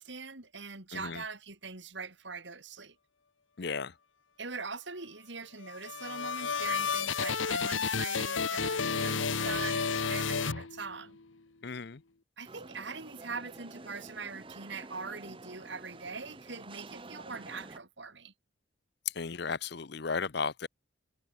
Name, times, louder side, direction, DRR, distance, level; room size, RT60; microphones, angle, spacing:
voice 1, 0.0-2.9 4.4-11.2 12.4-18.3, right 4 dB, 65° right, 3.1 m, -42 dB
voice 2, 0.9-1.2 3.6-3.9 11.6-12.0 19.1-20.7, left 5 dB, 55° left, 0.7 m, -35 dB
sound 1, 5.6-11.2, left 5 dB, 75° left, 1.3 m, -31 dB
sound 2, 12.5-17.8, right 2 dB, 25° right, 1.2 m, -49 dB
head